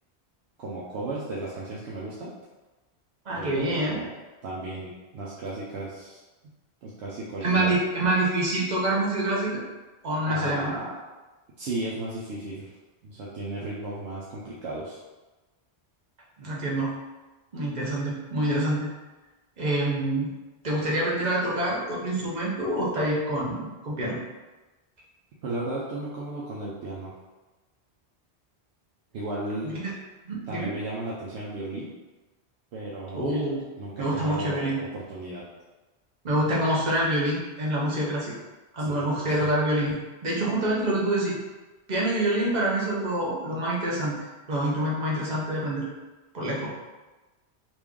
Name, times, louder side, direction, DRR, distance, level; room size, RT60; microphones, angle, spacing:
voice 1, 0.6-2.3 3.3-4.1 4.4-6.2 6.8-7.7 10.3-10.9 11.6-12.7 13.0-15.0 25.4-27.1 29.1-29.8 30.5-31.9 32.7-33.4 33.8-34.6 34.9-35.4 38.8-39.5 46.4-46.7, right 2 dB, 85° right, -7 dB, 0.9 m, -35 dB
voice 2, 3.3-4.0 7.4-9.6 10.0-10.7 16.4-16.9 17.5-18.9 19.6-20.3 20.6-24.2 29.6-29.9 30.3-30.8 33.1-33.6 34.0-34.8 36.2-38.3 38.7-41.4 41.9-45.9 46.3-46.7, right 1 dB, 45° right, -5 dB, 0.9 m, -26 dB
3.1 x 2.5 x 3.5 m, 1.2 s
omnidirectional pair, 1.1 m